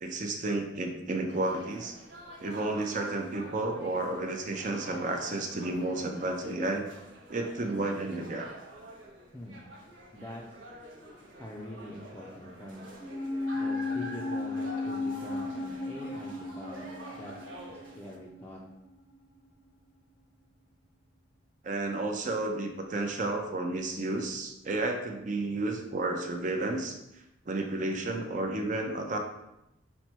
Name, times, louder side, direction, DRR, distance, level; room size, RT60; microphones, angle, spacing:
voice 1, 0.0-2.0 2.4-6.8 7.3-8.5 21.6-29.2, right 2 dB, 40° right, 4 dB, 0.5 m, -32 dB
sound 1, 1.3-18.2, right 1 dB, 85° right, 0.7 m, -47 dB
voice 2, 10.1-10.4 11.4-12.8 13.5-16.9 17.2-17.3 17.7-18.6, left 1 dB, 10° left, -4 dB, 0.4 m, -44 dB
sound 2, 13.0-19.6 19.8-19.9, left 3 dB, 80° left, 0.7 m, -36 dB
5.4 x 2.1 x 4.4 m, 0.89 s
head